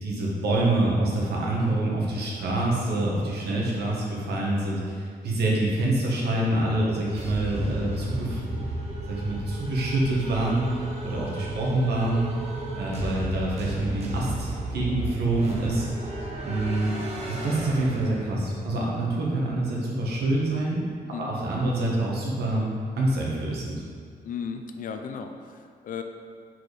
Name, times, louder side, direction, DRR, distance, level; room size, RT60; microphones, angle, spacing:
voice 1, 0.0-8.6 9.1-10.7 11.0-12.2 12.7-16.2 16.4-16.9 17.3-20.8 21.2-22.7 23.0-23.8, right 1 dB, 85° right, -4 dB, 1.3 m, -26 dB
sound 1, 7.2-18.6, right 2 dB, 40° right, 0.9 m, -34 dB
voice 2, 24.2-26.0, left 6 dB, 60° left, 6 dB, 0.5 m, -35 dB
4.5 x 4.3 x 4.9 m, 2.2 s
wide cardioid pair, 155°, 16 cm